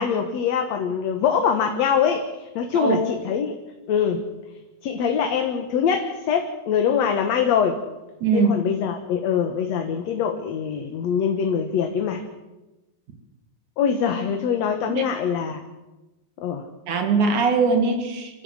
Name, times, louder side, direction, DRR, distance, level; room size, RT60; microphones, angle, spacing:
voice 1, 0.0-3.5 3.9-4.2 4.8-7.8 8.3-12.2 13.8-15.6 16.4-16.7, left 7 dB, 70° left, 5 dB, 2.5 m, -23 dB
voice 2, 8.2-8.6 14.9-15.0 16.9-18.4, right 4 dB, 85° right, 5 dB, 3.9 m, -21 dB
26.5 x 15.0 x 7.9 m, 1.1 s
omnidirectional pair, 3.3 m